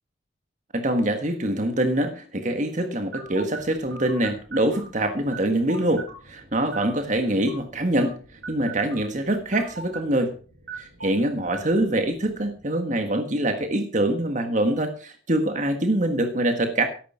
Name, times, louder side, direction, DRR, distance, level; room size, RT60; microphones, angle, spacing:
voice 1, 0.7-8.1 8.5-10.3 10.8-16.8, right 1 dB, 40° right, 7 dB, 1.6 m, -24 dB
sound 1, 3.1-12.6, right 4 dB, 70° right, 4.7 m, -42 dB
13.5 x 11.5 x 5.1 m, 0.39 s
head